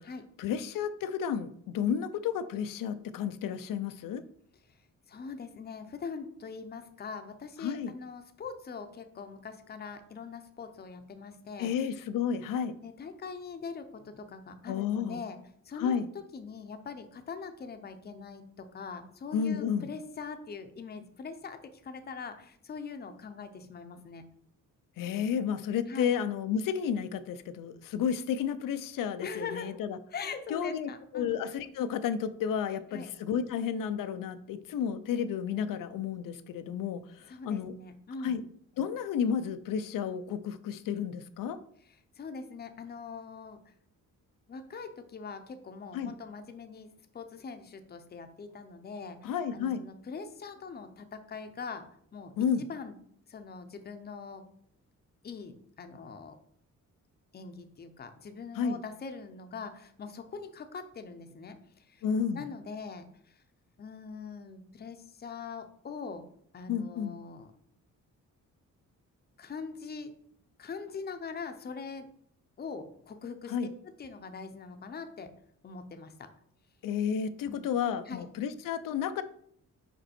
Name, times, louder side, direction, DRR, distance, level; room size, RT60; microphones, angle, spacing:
voice 1, 0.4-4.2 7.6-7.9 11.6-12.8 14.7-15.2 15.8-16.1 19.3-19.9 25.0-30.0 30.5-37.7 38.2-38.4 38.8-41.6 45.9-46.1 49.2-49.8 52.4-52.6 58.6-58.8 62.0-62.4 66.7-67.2 73.5-73.7 76.8-79.2, left 7 dB, 90° left, 12 dB, 0.6 m, -32 dB
voice 2, 5.1-11.7 12.8-15.4 15.6-16.0 16.3-24.2 25.9-26.1 29.2-29.8 30.1-31.4 32.9-33.1 37.3-38.4 41.8-43.7 44.5-51.9 52.1-52.3 52.7-52.9 53.3-54.4 55.2-56.4 57.3-62.0 62.3-63.4 63.8-66.2 66.5-67.5 69.4-70.1 70.6-72.1 72.6-73.6 74.0-75.3 75.6-76.3 77.4-77.6 78.1-78.3, left 5 dB, 30° left, 8 dB, 0.6 m, -42 dB
5.4 x 5.3 x 4.2 m, 0.66 s
wide cardioid pair, 160°, 32 cm